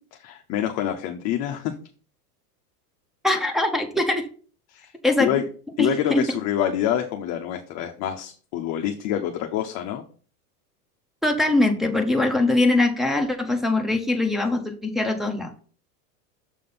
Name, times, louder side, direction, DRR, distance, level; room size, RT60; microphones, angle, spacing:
voice 1, 0.2-1.7 4.7-4.9 5.2-5.4 5.8-10.0, left 10 dB, 35° left, 3 dB, 0.7 m, -26 dB
voice 2, 3.2-4.3 5.0-5.3 5.8-6.2 11.2-15.6, left 2 dB, ahead, 7 dB, 0.7 m, -22 dB
6.8 x 3.6 x 5.6 m, 0.42 s
supercardioid pair, 130°, 48 cm